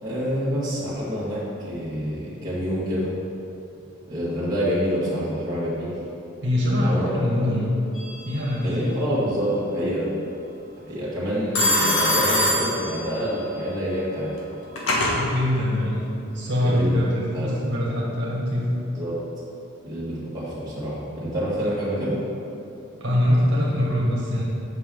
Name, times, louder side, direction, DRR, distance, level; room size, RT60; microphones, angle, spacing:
voice 1, 0.0-3.1 4.1-5.9 6.8-7.1 8.6-10.1 10.9-14.3 16.6-17.0 17.3-17.5 18.9-19.2 19.8-22.2, equal, 20° right, -9 dB, 1.7 m, -27 dB
voice 2, 6.4-7.7 8.2-8.9 15.1-16.0 16.3-18.7 23.0-24.4, left 1 dB, 55° right, -6 dB, 1.5 m, -23 dB
Telephone, 7.9-8.5 11.5-13.4 14.4-15.2, left 1 dB, 80° left, 1.4 m, -23 dB
8.3 x 5.9 x 3.8 m, 2.9 s
head